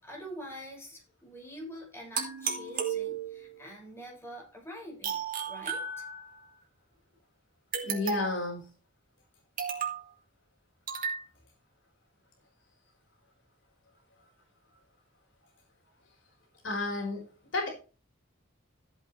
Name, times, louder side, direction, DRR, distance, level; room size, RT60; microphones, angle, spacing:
voice 1, 0.0-6.0, equal, 15° left, -2 dB, 6.1 m, -45 dB
sound 1, 2.2-3.6 5.0-6.5 7.7-8.5 9.6-10.1 10.9-11.2, right 6 dB, 45° right, 2.9 m, -34 dB
voice 2, 7.8-8.7 16.6-17.3 17.5-17.7, left 2 dB, 70° left, 1 dB, 4.6 m, -31 dB
14.5 x 8.0 x 3.3 m, 0.34 s
head